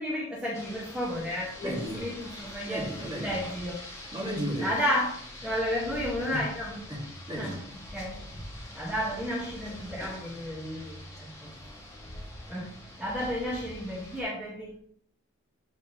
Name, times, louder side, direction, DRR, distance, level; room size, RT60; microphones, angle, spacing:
voice 1, 0.0-2.9 3.2-3.8 4.6-6.8 7.4-7.5 7.9-8.2 8.7-11.5 12.5-14.7, equal, 5° right, -8 dB, 1.9 m, -32 dB
Rain, 0.5-14.2, left 1 dB, 15° left, 1.8 m, -44 dB
voice 2, 1.6-2.1 2.7-3.4 4.1-4.8 6.3-6.5 6.9-7.6, equal, 25° right, -4 dB, 2.5 m, -34 dB
12.0 x 4.4 x 3.2 m, 0.64 s
head